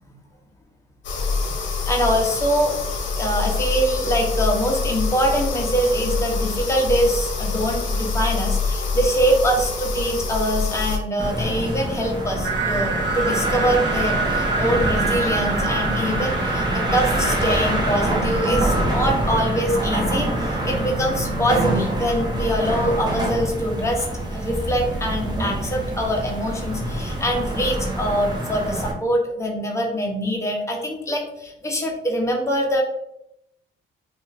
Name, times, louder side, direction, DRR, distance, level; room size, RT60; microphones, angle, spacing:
sound 1, 1.0-11.0, left 4 dB, 65° left, 0.8 m, -25 dB
voice 1, 1.9-2.7 3.2-24.1 24.3-32.8, equal, 15° left, 0 dB, 0.9 m, -23 dB
sound 2, 11.2-28.9, right 1 dB, 20° right, 0.9 m, -25 dB
sound 3, 12.4-17.5, right 4 dB, 65° right, 0.7 m, -29 dB
2.8 x 2.5 x 4.0 m, 0.80 s
cardioid pair, 90°, 20 cm